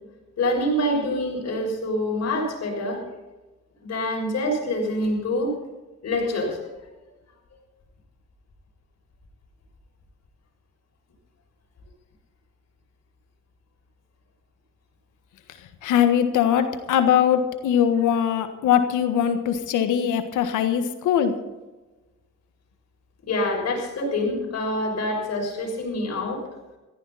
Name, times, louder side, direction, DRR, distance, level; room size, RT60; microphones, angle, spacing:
voice 1, 0.4-3.0 3.8-5.5 6.0-6.6 23.3-26.4, left 1 dB, 60° left, 0 dB, 6.6 m, -26 dB
voice 2, 15.8-21.3, left 9 dB, 85° left, 8 dB, 1.6 m, -21 dB
17.0 x 15.0 x 4.2 m, 1.1 s
cardioid pair, 90°, 30 cm